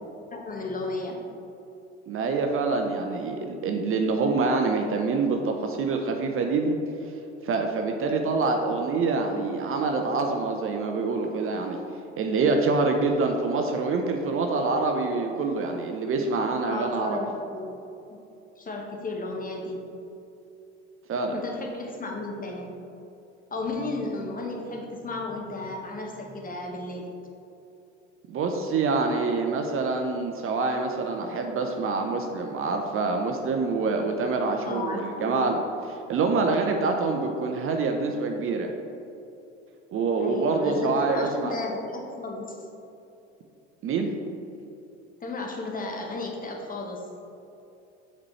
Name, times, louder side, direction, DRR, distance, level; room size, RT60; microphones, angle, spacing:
voice 1, 0.3-1.2 16.7-17.7 18.1-18.2 18.6-19.8 21.3-22.7 23.5-27.1 34.6-35.5 40.2-42.6 45.2-47.1, left 2 dB, 25° left, 1 dB, 1.0 m, -34 dB
voice 2, 2.1-6.8 7.4-11.8 12.2-17.2 21.1-21.4 28.3-35.6 35.9-38.7 39.9-41.5 43.8-44.1, right 3 dB, 40° right, 3 dB, 0.6 m, -26 dB
7.4 x 4.3 x 3.2 m, 2.8 s
hypercardioid pair, 65°, 36 cm